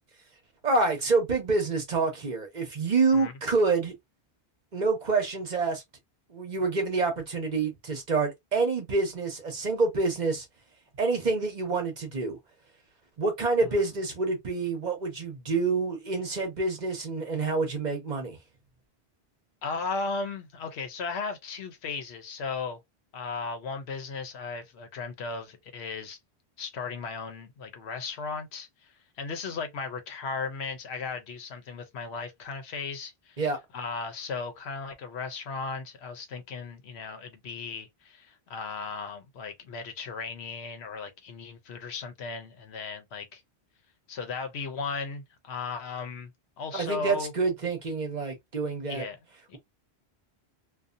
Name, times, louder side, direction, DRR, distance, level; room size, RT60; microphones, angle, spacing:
voice 1, 0.6-3.9 4.7-5.8 6.3-10.4 11.0-12.4 13.2-18.4 33.4-33.6 46.7-49.0, right 4 dB, 45° right, 0.9 m, -27 dB
voice 2, 19.6-22.8 23.1-26.2 26.6-28.9 29.2-33.4 33.7-43.4 44.1-46.3 46.6-47.3 48.9-49.2 49.5-49.6, left 4 dB, 75° left, 0.9 m, -36 dB
2.6 x 2.4 x 2.5 m
omnidirectional pair, 1.1 m